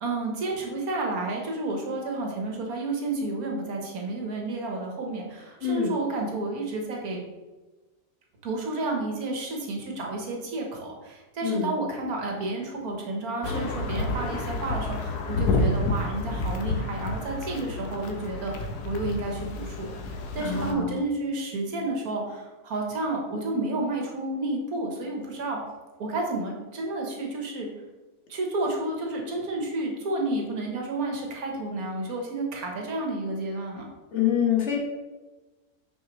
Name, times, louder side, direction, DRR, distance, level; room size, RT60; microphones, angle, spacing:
voice 1, 0.0-7.2 8.4-20.0 20.3-25.6 26.0-27.7 28.3-33.9, right 2 dB, 70° right, 0 dB, 1.5 m, -31 dB
voice 2, 5.6-5.9 11.4-11.7 20.4-20.8 34.1-34.8, left 8 dB, 50° left, -2 dB, 1.6 m, -25 dB
sound 1, 13.4-20.7, left 2 dB, 80° left, 1.2 m, -30 dB
6.3 x 5.3 x 3.0 m, 1.2 s
omnidirectional pair, 1.7 m